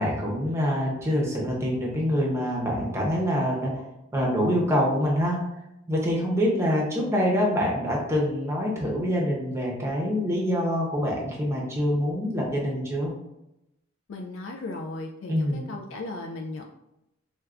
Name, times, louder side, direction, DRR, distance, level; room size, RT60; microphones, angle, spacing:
voice 1, 0.0-3.8 4.1-5.4 5.9-13.1 15.3-15.6, equal, 15° right, -2 dB, 0.7 m, -25 dB
voice 2, 14.1-16.7, left 2 dB, 70° left, 2 dB, 0.3 m, -36 dB
4.4 x 2.2 x 2.4 m, 0.88 s
head